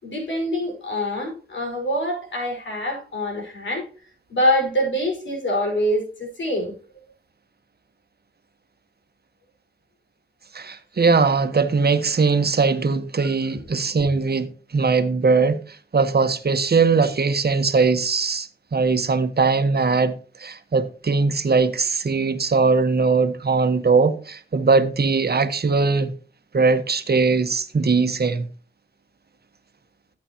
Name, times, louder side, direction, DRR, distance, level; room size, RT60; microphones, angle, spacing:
voice 1, 0.0-3.9 4.3-6.7 13.2-13.3, equal, 80° left, 5.2 m, -25 dB
voice 2, 10.5-26.1 26.5-28.5, right 4 dB, 55° right, 1.3 m, -20 dB
13.5 x 8.6 x 3.0 m
cardioid pair, 45°, 19 cm